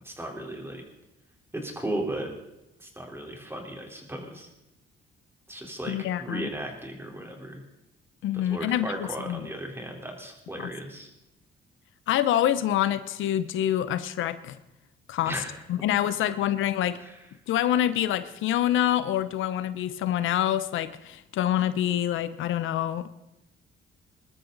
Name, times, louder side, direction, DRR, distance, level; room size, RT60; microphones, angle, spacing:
voice 1, 0.0-0.8 1.5-2.3 2.8-4.5 5.5-7.6 8.5-11.1 15.3-15.6 17.0-17.3, right 1 dB, 10° right, 1 dB, 3.9 m, -36 dB
voice 2, 5.9-6.5 8.2-9.5 10.6-10.7 12.1-14.6 15.1-15.4 15.7-17.0 17.5-23.1, left 11 dB, 80° left, 13 dB, 0.8 m, -26 dB
21.0 x 13.0 x 4.0 m, 0.89 s
cardioid pair, 90°, 20 cm